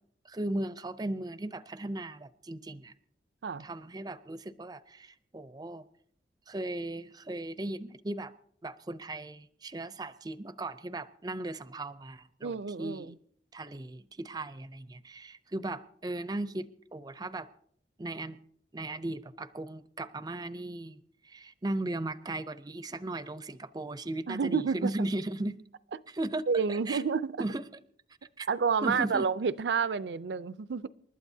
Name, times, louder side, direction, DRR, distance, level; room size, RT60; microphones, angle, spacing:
voice 1, 0.3-2.9 3.6-5.8 6.5-8.3 8.6-12.5 12.8-13.2 13.5-17.5 18.0-18.4 18.7-25.6 26.1-27.0 27.4-27.6 28.4-28.5 28.8-29.3, right 2 dB, 20° right, 0.5 m, -37 dB
voice 2, 12.4-13.2 24.3-24.9 26.5-27.4 28.5-30.9, right 5 dB, 75° right, 0.5 m, -29 dB
28.5 x 12.5 x 2.7 m
head